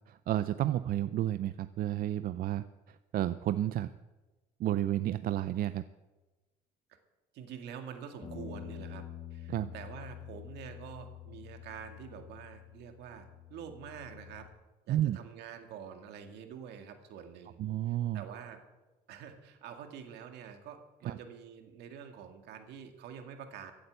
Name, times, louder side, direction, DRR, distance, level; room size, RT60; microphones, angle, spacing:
voice 1, 0.1-3.9 4.6-5.8 9.5-9.7 14.9-15.2 17.6-18.2 21.1-21.2, right 12 dB, 60° right, 13 dB, 0.5 m, -31 dB
voice 2, 7.3-9.0 9.3-14.5 14.9-17.6 17.9-18.6 19.1-23.7, right 7 dB, 80° right, 6 dB, 2.0 m, -47 dB
Bass guitar, 8.2-14.5, left 10 dB, 35° left, 2.8 m, -47 dB
15.0 x 8.7 x 8.1 m, 1.1 s
cardioid pair, 110°, 17 cm